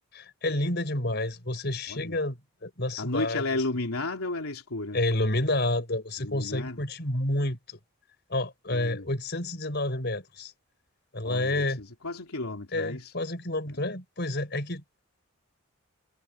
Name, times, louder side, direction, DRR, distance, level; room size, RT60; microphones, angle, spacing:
voice 1, 0.1-3.4 4.9-7.8 8.3-10.5 11.1-11.8 12.7-14.8, left 1 dB, 50° left, 5.0 m, -29 dB
voice 2, 3.0-5.0 6.2-6.8 8.7-9.1 11.2-13.1, left 2 dB, 85° left, 3.2 m, -33 dB
head